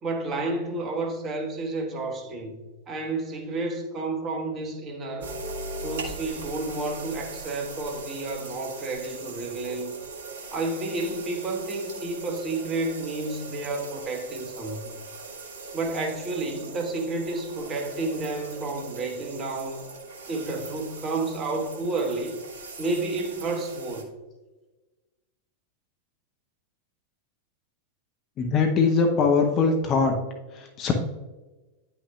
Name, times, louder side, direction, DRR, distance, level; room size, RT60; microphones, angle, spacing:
voice 1, 0.0-5.3 5.8-9.9 10.5-15.0 15.7-19.8 20.3-22.4 22.8-24.1, right 2 dB, 25° right, 1.2 m, -31 dB
sound 1, 5.2-24.0, right 3 dB, 60° right, 1.0 m, -40 dB
voice 2, 28.4-30.1 30.5-30.9, left 4 dB, 30° left, 0.7 m, -22 dB
9.4 x 6.0 x 2.3 m
figure-of-eight pair, 90°, 0 cm